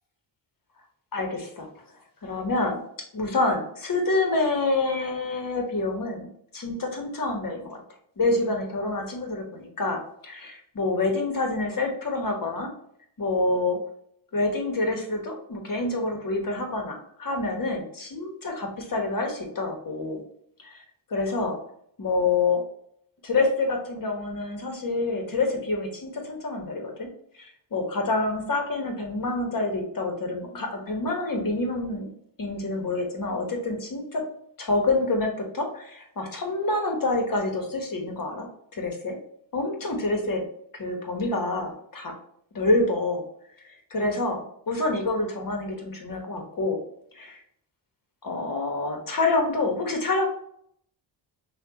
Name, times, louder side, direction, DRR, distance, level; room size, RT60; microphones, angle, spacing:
voice 1, 1.1-1.7 2.2-2.8 3.1-6.3 6.5-7.8 8.2-12.7 13.2-13.8 14.3-20.2 20.6-20.8 21.1-21.6 22.0-22.6 23.2-27.1 27.3-32.1 32.4-34.3 34.6-38.5 38.7-39.2 39.5-40.4 40.7-42.1 42.5-43.2 43.6-46.8 47.1-47.4 48.2-50.3, left 2 dB, 45° left, 3 dB, 1.2 m, -27 dB
5.7 x 2.3 x 2.8 m, 0.68 s
supercardioid pair, 60°, 48 cm